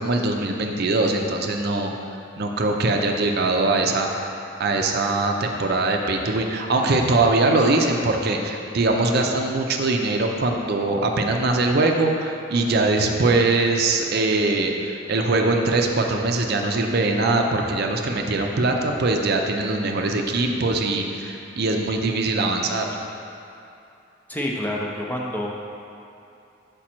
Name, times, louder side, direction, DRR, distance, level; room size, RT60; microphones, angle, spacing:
voice 1, 0.0-1.9 2.4-4.3 4.6-22.9, right 2 dB, 55° right, 2 dB, 0.5 m, -22 dB
voice 2, 24.3-25.5, left 1 dB, 10° left, -2 dB, 0.5 m, -27 dB
6.1 x 5.2 x 4.4 m, 2.8 s
head